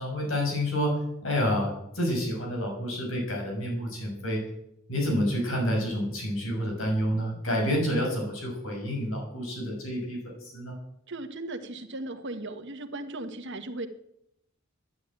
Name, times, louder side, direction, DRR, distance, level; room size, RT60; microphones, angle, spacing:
voice 1, 0.0-4.4 4.9-10.8, equal, 75° left, 0 dB, 6.2 m, -29 dB
voice 2, 11.1-13.9, right 2 dB, 60° right, 7 dB, 1.6 m, -37 dB
13.0 x 11.5 x 9.1 m, 0.78 s
head